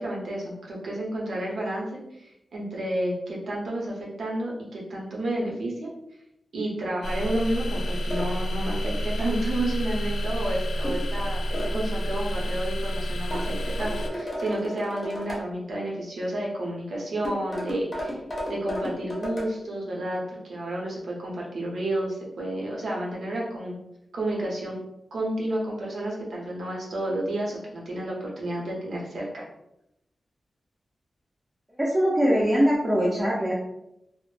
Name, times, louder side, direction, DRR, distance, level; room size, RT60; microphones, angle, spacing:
voice 1, 0.0-5.9 6.5-18.2 18.5-23.8 24.1-24.8 25.1-29.4, right 1 dB, 85° right, -3 dB, 0.7 m, -31 dB
sound 1, 7.0-14.1, equal, 70° left, 0.3 m, -29 dB
sound 2, 8.1-8.3 10.8-11.1 11.5-11.8 13.3-15.4 17.2-19.5, equal, 30° left, 0.6 m, -33 dB
voice 2, 31.8-33.5, equal, 15° right, -5 dB, 0.4 m, -22 dB
2.1 x 2.0 x 3.1 m, 0.84 s
wide cardioid pair, 175°, 0 cm